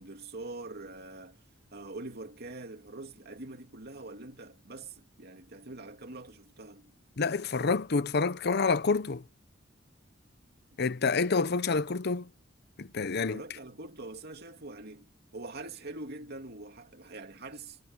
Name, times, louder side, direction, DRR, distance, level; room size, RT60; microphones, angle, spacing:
voice 1, 0.0-1.4 1.7-6.9 13.3-17.8, right 2 dB, 55° right, 2.7 m, -44 dB
voice 2, 7.2-9.2 10.8-12.3 12.8-13.4, left 4 dB, 55° left, 0.8 m, -28 dB
head